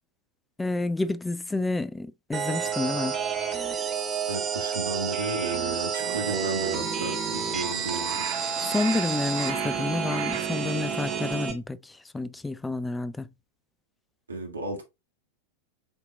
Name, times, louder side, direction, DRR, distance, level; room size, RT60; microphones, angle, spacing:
voice 1, 0.6-3.2 8.6-13.3, left 3 dB, 10° left, 0.4 m, -29 dB
sound 1, 2.3-11.5, right 6 dB, 20° right, 1.3 m, -30 dB
voice 2, 4.3-8.3 14.3-14.8, right 3 dB, 80° right, 1.5 m, -33 dB
Crow, 6.0-11.5, right 10 dB, 50° right, 0.6 m, -38 dB
7.8 x 2.8 x 2.4 m
figure-of-eight pair, 90°, 0 cm